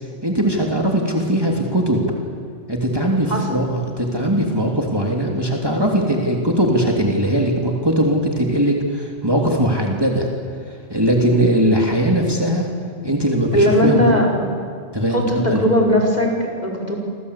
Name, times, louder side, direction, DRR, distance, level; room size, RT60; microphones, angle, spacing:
voice 1, 0.2-2.0 2.7-10.3 10.7-12.7 13.0-14.0 14.9-15.6, right 1 dB, 20° right, 0 dB, 3.2 m, -20 dB
voice 2, 3.3-3.6 13.5-14.4 15.1-16.9, equal, 35° left, 0 dB, 5.1 m, -18 dB
29.0 x 24.0 x 8.4 m, 2.2 s
omnidirectional pair, 1.2 m